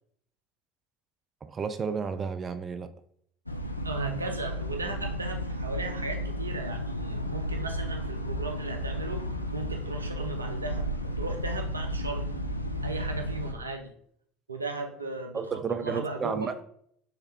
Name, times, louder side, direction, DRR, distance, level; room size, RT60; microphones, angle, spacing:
voice 1, 1.4-2.9 15.3-16.6, right 6 dB, 30° right, 9 dB, 0.4 m, -32 dB
sound 1, 3.5-13.5, equal, 90° left, 0.3 m, -33 dB
voice 2, 3.8-9.2 9.5-12.3 12.8-13.9 14.5-16.5, right 3 dB, 85° right, 4 dB, 0.5 m, -36 dB
3.6 x 3.2 x 4.5 m, 0.66 s
figure-of-eight pair, 65°, 0 cm